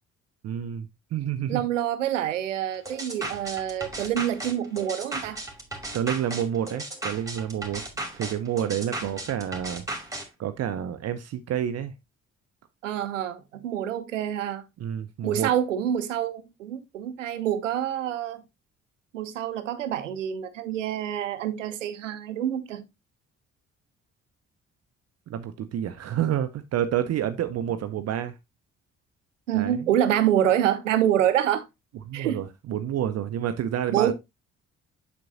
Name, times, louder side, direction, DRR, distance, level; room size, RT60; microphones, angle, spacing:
voice 1, 0.4-1.6 5.9-7.8 8.1-9.8 10.4-11.9 14.8-15.5 25.3-28.4 29.5-29.9 32.1-34.1, right 10 dB, 45° right, 0.6 m, -29 dB
voice 2, 1.5-5.4 9.0-9.1 12.8-14.6 15.2-18.4 19.1-22.8 29.5-31.7 32.1-32.4 33.9-34.1, right 11 dB, 80° right, 0.7 m, -26 dB
sound 1, 2.9-10.3, right 2 dB, 10° right, 2.2 m, -35 dB
7.6 x 6.0 x 2.6 m
figure-of-eight pair, 45°, 37 cm